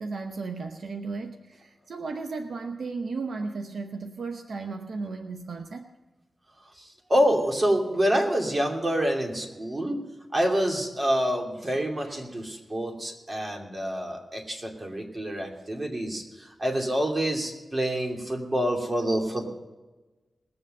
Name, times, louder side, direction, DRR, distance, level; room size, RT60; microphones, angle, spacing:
voice 1, 0.0-5.9, right 4 dB, 75° right, 6 dB, 0.8 m, -35 dB
voice 2, 7.1-10.0 10.3-19.4, equal, 35° right, 1 dB, 2.8 m, -27 dB
20.5 x 7.8 x 5.4 m, 1.2 s
cardioid pair, 70°, 0 cm